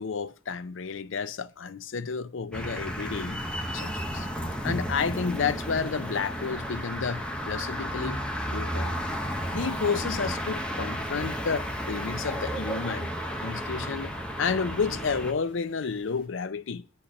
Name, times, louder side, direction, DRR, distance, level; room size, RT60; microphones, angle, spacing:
voice 1, 0.0-3.4 3.7-4.3 4.6-8.2 8.5-9.0 9.5-13.1 13.4-14.1 14.4-16.9, left 5 dB, 85° left, 0.6 m, -31 dB
sound 1, 2.5-15.3, equal, 5° left, 0.9 m, -33 dB
sound 2, 5.6-16.3, left 1 dB, 50° left, 2.4 m, -57 dB
9.8 x 4.3 x 6.4 m
head